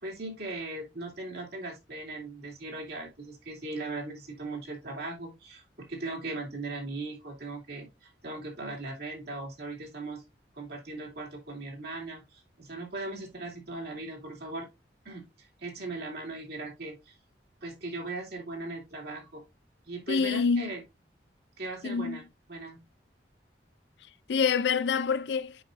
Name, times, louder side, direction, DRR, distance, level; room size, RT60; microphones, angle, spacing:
voice 1, 0.0-10.2 10.5-14.7 15.0-17.2 17.6-19.4 19.8-20.8 21.6-22.8, right 2 dB, 65° right, 2.4 m, -39 dB
voice 2, 20.1-20.7 21.8-22.2 24.3-25.6, left 5 dB, 70° left, 0.4 m, -26 dB
7.8 x 5.4 x 2.5 m
head